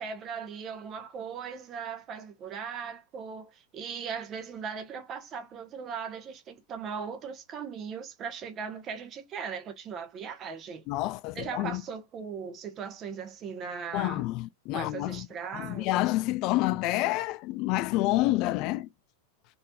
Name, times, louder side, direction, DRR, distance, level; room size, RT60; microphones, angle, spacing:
voice 1, 0.0-10.8 11.3-14.2 14.7-16.0, right 6 dB, 30° right, 1.3 m, -38 dB
voice 2, 10.9-11.8 13.9-15.3 15.5-18.9, left 17 dB, 40° left, 0.3 m, -28 dB
4.2 x 3.9 x 2.4 m
figure-of-eight pair, 90°, 0 cm